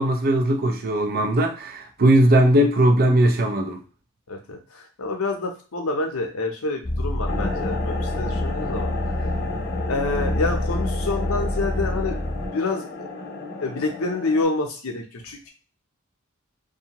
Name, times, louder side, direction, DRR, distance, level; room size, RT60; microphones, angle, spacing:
voice 1, 0.0-3.8, right 1 dB, 45° right, 0.5 m, -19 dB
voice 2, 4.3-8.9 9.9-12.2 12.5-13.1 13.6-15.5, left 3 dB, 85° left, 0.7 m, -27 dB
sound 1, 6.8-12.5, left 1 dB, 15° left, 0.8 m, -27 dB
sound 2, 7.3-14.4, left 2 dB, 50° left, 0.6 m, -32 dB
2.6 x 2.3 x 2.9 m
head